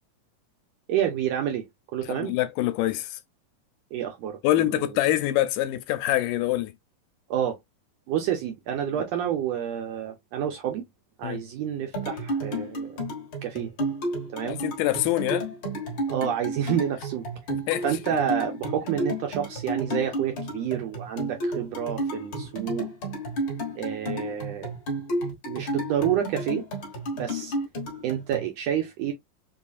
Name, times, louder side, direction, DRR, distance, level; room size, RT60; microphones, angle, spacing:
voice 1, 0.9-1.7 1.9-2.3 3.9-4.8 7.3-7.6 8.1-10.8 11.2-12.9 13.4-13.7 14.3-14.6 16.1-17.3 17.8-22.9 23.8-24.7 25.5-26.6 27.1-27.5 28.0-29.1, right 9 dB, 85° right, 1.5 m, -29 dB
voice 2, 2.0-3.2 4.4-6.7 11.2-11.4 14.5-15.5 17.5-17.8, left 15 dB, 80° left, 2.0 m, -25 dB
sound 1, 11.9-28.5, right 1 dB, 50° left, 1.5 m, -32 dB
5.2 x 2.4 x 2.4 m
omnidirectional pair, 3.9 m